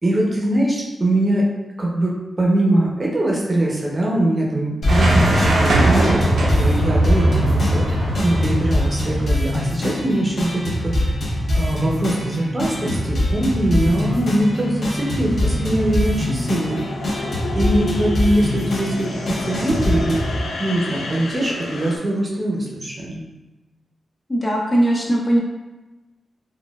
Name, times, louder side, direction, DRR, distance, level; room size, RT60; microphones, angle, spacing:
voice 1, 0.0-1.5 1.8-11.0 11.5-17.2 17.5-20.2 20.6-23.2, right 1 dB, 25° right, -3 dB, 0.6 m, -22 dB
sound 1, 4.8-20.4, left 1 dB, 55° left, 0.8 m, -24 dB
sound 2, 4.9-9.6, right 1 dB, 80° right, 0.6 m, -19 dB
sound 3, 12.8-22.0, left 3 dB, 90° left, 0.4 m, -32 dB
voice 2, 24.3-25.4, right 1 dB, 20° left, -3 dB, 0.4 m, -19 dB
4.1 x 2.2 x 2.2 m, 1.1 s
wide cardioid pair, 165°, 0 cm